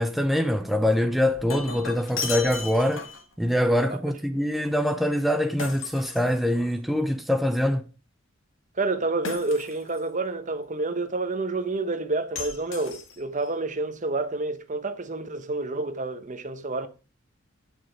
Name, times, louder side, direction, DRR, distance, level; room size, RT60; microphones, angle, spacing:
voice 1, 0.0-3.1 3.4-7.8, left 1 dB, ahead, 0.6 m, -24 dB
Shatter, 1.1-3.3 5.6-6.9 9.2-10.0 12.4-13.5, left 5 dB, 75° left, 2.3 m, -36 dB
voice 2, 8.8-16.9, right 3 dB, 40° right, 1.1 m, -29 dB
11.0 x 6.5 x 5.1 m
head